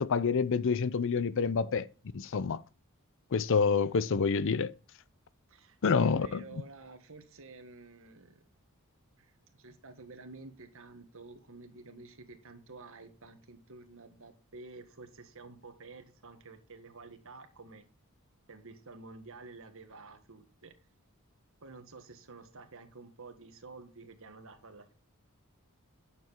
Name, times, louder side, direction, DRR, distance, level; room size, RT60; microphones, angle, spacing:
voice 1, 0.0-1.9 2.1-2.6 3.3-4.7 5.8-6.4, left 5 dB, 60° left, 0.5 m, -27 dB
voice 2, 5.5-8.5 9.2-17.9 18.5-20.7 21.6-24.9, right 3 dB, 65° right, 1.5 m, -50 dB
9.2 x 7.0 x 4.5 m
head